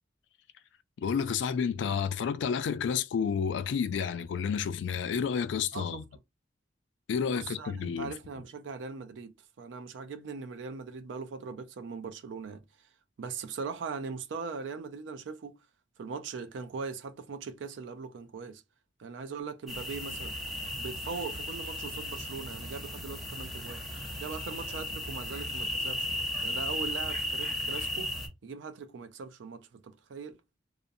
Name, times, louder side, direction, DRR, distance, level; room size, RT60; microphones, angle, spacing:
voice 1, 1.0-6.0 7.1-8.1, left 6 dB, 70° left, 0.3 m, -30 dB
voice 2, 7.2-12.9 13.2-15.6 16.0-18.6 19.0-20.3 20.8-23.8 24.2-26.1 26.4-28.1 28.4-30.4, right 5 dB, 75° right, 0.4 m, -40 dB
sound 1, 19.7-28.3, left 1 dB, ahead, 0.7 m, -35 dB
2.5 x 2.0 x 2.6 m
head